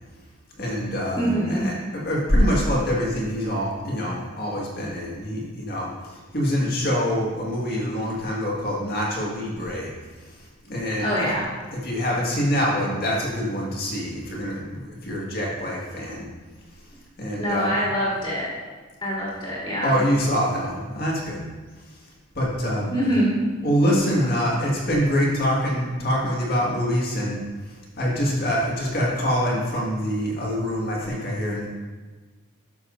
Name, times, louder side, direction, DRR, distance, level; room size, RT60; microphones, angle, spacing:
voice 1, 0.6-9.9 10.7-11.1 11.7-16.3 17.2-17.7 19.8-21.4 22.4-22.9 23.6-27.4 28.0-31.7, equal, 45° left, -3 dB, 1.8 m, -25 dB
voice 2, 1.1-1.6 11.0-11.5 17.4-18.5 19.0-20.0 22.9-23.3 24.1-24.3, equal, 25° left, -8 dB, 2.7 m, -24 dB
12.0 x 7.1 x 2.6 m, 1.3 s
head